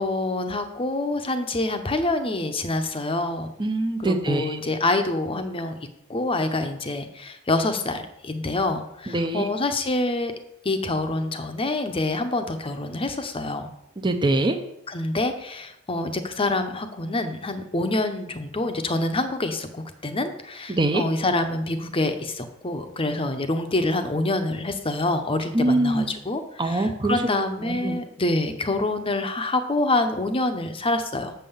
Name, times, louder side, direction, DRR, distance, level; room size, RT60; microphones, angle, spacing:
voice 1, 0.0-3.5 4.0-5.8 6.1-10.3 10.6-13.7 14.9-31.3, left 2 dB, 25° left, 8 dB, 0.8 m, -26 dB
voice 2, 3.6-4.6 9.1-9.5 14.0-14.6 20.7-21.0 25.5-26.1 26.6-27.2 27.6-28.0, right 2 dB, 20° right, 6 dB, 0.6 m, -23 dB
7.4 x 5.7 x 7.0 m, 0.82 s
head